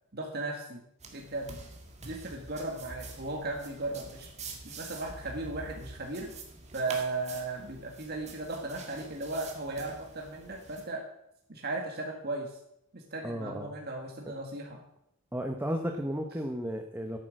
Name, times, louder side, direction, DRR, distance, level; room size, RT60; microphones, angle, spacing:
voice 1, 0.1-0.8 1.1-1.5 2.0-4.3 4.6-6.3 6.7-11.0 11.5-12.5 12.9-14.8, right 2 dB, 50° right, 1 dB, 1.8 m, -36 dB
sound 1, 1.0-10.9, right 3 dB, 30° right, 2.0 m, -46 dB
voice 2, 13.2-13.7 15.3-17.2, equal, 10° right, 4 dB, 0.9 m, -33 dB
11.0 x 8.8 x 6.3 m, 0.77 s
head